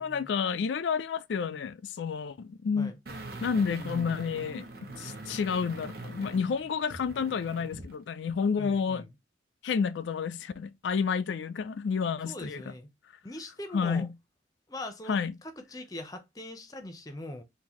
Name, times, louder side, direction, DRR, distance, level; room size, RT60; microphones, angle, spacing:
voice 1, 0.0-2.9 3.4-4.6 5.0-9.0 9.6-12.6 13.7-14.1 15.1-15.3, left 6 dB, 85° left, 0.4 m, -30 dB
sound 1, 3.1-8.0 8.3-8.4, right 2 dB, 55° right, 0.9 m, -43 dB
voice 2, 8.6-9.1 12.2-12.9 13.2-14.1 14.7-17.4, left 1 dB, 20° left, 0.6 m, -41 dB
3.9 x 2.6 x 2.9 m
head